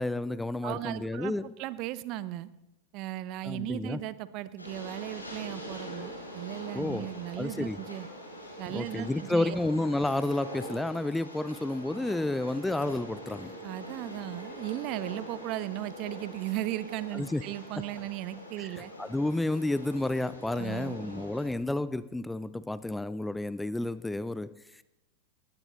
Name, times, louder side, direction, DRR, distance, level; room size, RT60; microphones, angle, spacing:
voice 1, 0.0-1.5 3.4-4.0 6.7-7.8 8.7-13.5 17.1-17.4 18.6-18.7 19.0-24.8, left 2 dB, 5° left, 0.4 m, -31 dB
voice 2, 0.6-1.3 1.6-2.5 2.9-8.1 8.6-9.6 13.6-18.9 20.6-21.0, right 15 dB, 40° right, 0.7 m, -36 dB
Train, 4.6-21.5, equal, 85° left, 4.8 m, -44 dB
20.5 x 15.5 x 3.1 m
figure-of-eight pair, 90°, 0 cm